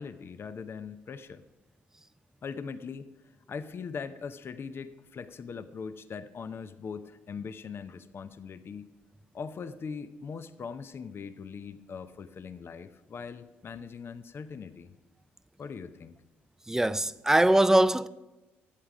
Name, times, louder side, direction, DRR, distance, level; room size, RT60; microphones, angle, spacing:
voice 1, 0.0-1.4 2.4-3.1 3.5-8.9 9.3-14.9 15.6-16.1, left 5 dB, 45° left, 0.7 m, -40 dB
voice 2, 16.7-18.1, right 1 dB, 10° right, 0.4 m, -22 dB
11.5 x 8.3 x 4.9 m
hypercardioid pair, 55°, 6 cm